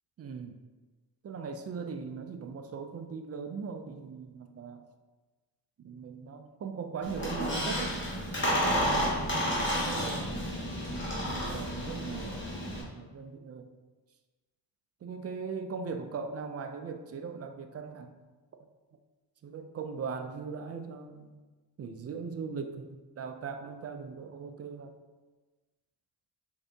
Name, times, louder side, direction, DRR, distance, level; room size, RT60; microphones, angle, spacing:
voice 1, 0.2-0.6 1.2-4.8 5.8-8.0 8.4-10.2 11.2-12.4 12.7-13.7 15.0-18.3 19.4-21.4 21.8-25.0, right 5 dB, 35° right, 7 dB, 0.4 m, -40 dB
Squeak, 7.0-12.8, equal, 25° left, 1.2 m, -31 dB
3.6 x 2.7 x 3.4 m, 1.3 s
cardioid pair, 60°, 44 cm